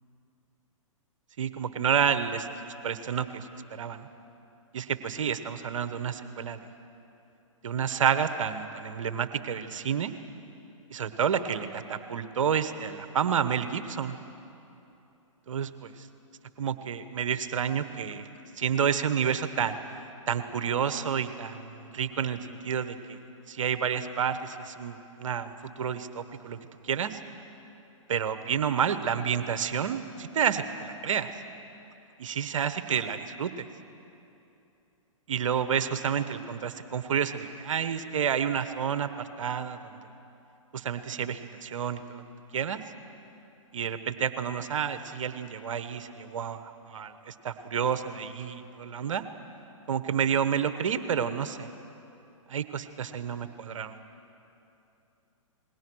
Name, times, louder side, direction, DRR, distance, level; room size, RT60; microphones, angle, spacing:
voice 1, 1.4-2.5 2.8-4.1 4.7-6.6 7.6-10.1 10.9-14.2 15.5-16.1 16.6-18.3 18.6-19.8 20.3-23.2 23.5-26.6 26.8-27.2 28.1-31.3 32.2-33.6 35.3-39.1 39.4-40.0 40.7-42.2 42.5-42.8 43.7-49.2 49.9-51.7 52.5-54.0, right 7 dB, 65° right, 11 dB, 1.1 m, -30 dB
28.0 x 20.5 x 6.3 m, 2.9 s
hypercardioid pair, 125°, 17 cm